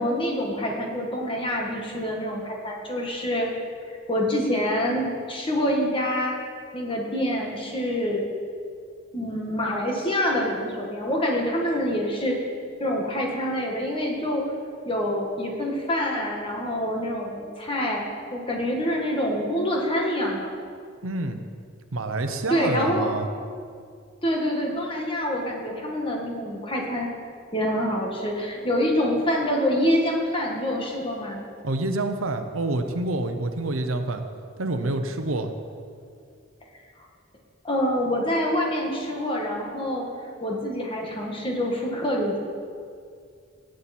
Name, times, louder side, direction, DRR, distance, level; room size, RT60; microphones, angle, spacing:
voice 1, 0.0-3.4 4.1-6.3 6.7-8.2 9.1-12.4 12.8-14.4 14.8-18.0 18.3-20.5 22.5-23.1 24.2-27.1 27.5-31.4 37.6-40.1 40.4-42.4, equal, 25° left, -1 dB, 1.7 m, -26 dB
voice 2, 21.0-21.4 21.9-23.3 31.6-34.2 34.6-35.5, right 2 dB, 85° right, 7 dB, 0.9 m, -27 dB
17.5 x 7.8 x 4.4 m, 2.2 s
head